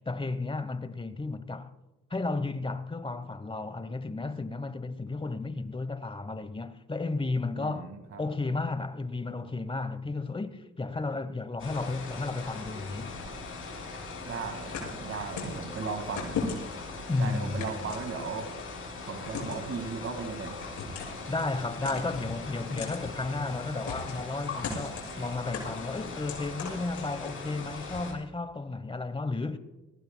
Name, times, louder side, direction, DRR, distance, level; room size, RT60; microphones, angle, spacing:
voice 1, 0.0-1.7 2.1-7.9 8.2-13.1 17.1-18.0 21.3-29.6, left 3 dB, 15° left, 1.0 m, -33 dB
voice 2, 7.6-8.2 14.3-16.4 17.2-18.5 19.0-20.6, right 5 dB, 50° right, 2.0 m, -36 dB
sound 1, 11.6-28.1, left 3 dB, 45° left, 5.9 m, -41 dB
sound 2, 14.7-15.6 16.2-16.9 17.6-18.5 19.3-19.7 20.6-21.2 21.8-22.3 22.8-23.0 23.9-24.3 24.6-25.1 25.5-27.4, left 5 dB, 70° left, 6.1 m, -37 dB
24.5 x 16.0 x 2.2 m
cardioid pair, 90°, 30 cm